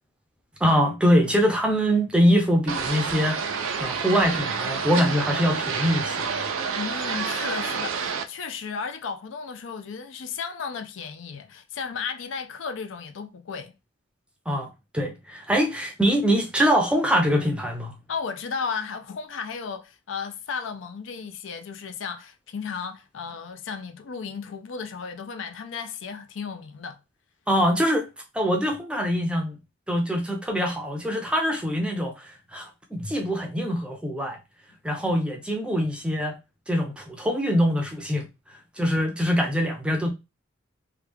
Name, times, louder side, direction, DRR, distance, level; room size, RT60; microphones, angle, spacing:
voice 1, 0.6-6.3 14.5-14.7 14.9-17.9 27.5-28.1 28.3-29.6 29.9-34.4 34.8-36.4 36.7-38.2 38.8-40.1, equal, 5° right, 0.5 m, -23 dB
sound 1, 2.7-8.2, right 5 dB, 80° right, 0.4 m, -29 dB
voice 2, 6.7-13.7 18.1-27.0, left 5 dB, 65° left, 0.4 m, -34 dB
3.2 x 2.3 x 3.3 m
head